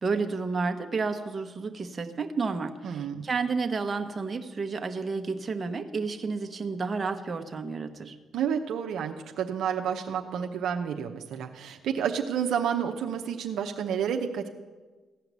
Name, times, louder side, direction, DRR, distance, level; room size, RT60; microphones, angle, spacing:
voice 1, 0.0-8.1, right 4 dB, 35° right, 6 dB, 1.2 m, -31 dB
voice 2, 2.8-3.3 8.3-14.5, right 8 dB, 75° right, 3 dB, 0.8 m, -30 dB
15.5 x 5.8 x 9.4 m, 1.3 s
cardioid pair, 75°, 0 cm